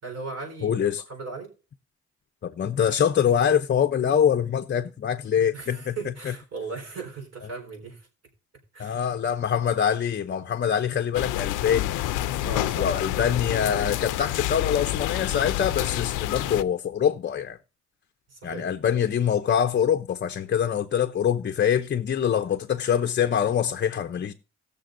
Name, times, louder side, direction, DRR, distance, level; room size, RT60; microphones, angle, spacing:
voice 1, 0.0-1.5 5.5-8.1 8.7-9.0 12.4-12.9 18.3-18.7, right 3 dB, 55° right, 4.2 m, -37 dB
voice 2, 0.6-1.0 2.4-6.0 8.8-11.9 12.8-17.6 18.4-24.3, left 8 dB, 35° left, 0.6 m, -24 dB
sound 1, 11.1-16.6, left 14 dB, 90° left, 0.5 m, -28 dB
18.5 x 6.7 x 2.6 m
cardioid pair, 90°, 30 cm